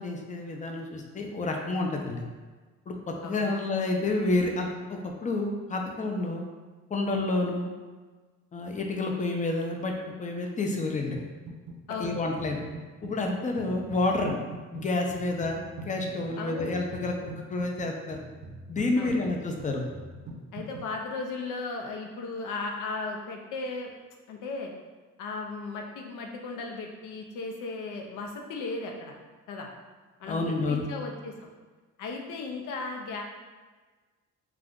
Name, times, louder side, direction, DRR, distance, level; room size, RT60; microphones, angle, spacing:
voice 1, 0.0-2.2 2.9-6.4 6.9-7.7 8.5-9.9 10.2-11.2 12.0-12.6 13.0-14.4 14.7-18.2 18.7-19.9 30.3-30.8, left 2 dB, 25° left, 2 dB, 0.4 m, -29 dB
voice 2, 3.2-3.6 11.9-12.2 16.4-16.7 19.0-19.3 20.5-23.9 24.3-24.7 25.2-29.1 29.5-29.7 30.2-31.5 32.0-33.2, left 3 dB, 85° left, 2 dB, 0.6 m, -36 dB
sound 1, 11.1-11.8 12.0-20.9, right 2 dB, 75° right, 0.6 m, -44 dB
2.5 x 2.3 x 3.5 m, 1.4 s
cardioid pair, 90°, 30 cm